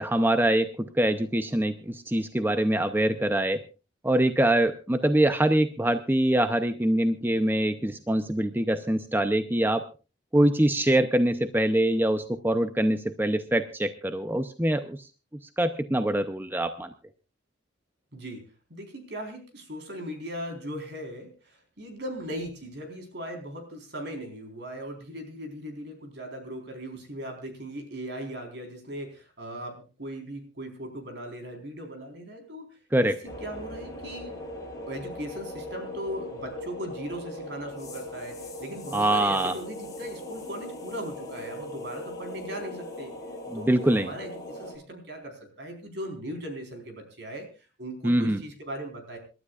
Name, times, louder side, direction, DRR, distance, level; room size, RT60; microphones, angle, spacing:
voice 1, 0.0-3.6 4.0-9.8 10.3-15.1 15.6-16.9 32.9-33.2 38.9-39.5 43.5-44.1 48.0-48.4, right 1 dB, 10° right, 9 dB, 0.6 m, -24 dB
voice 2, 18.1-18.4 18.7-33.1 33.4-34.4 34.9-43.1 43.5-47.5 47.8-49.2, equal, 60° right, 4 dB, 4.1 m, -38 dB
sound 1, 33.2-44.8, left 1 dB, 20° left, 6.9 m, -39 dB
27.0 x 12.5 x 2.4 m, 0.32 s
head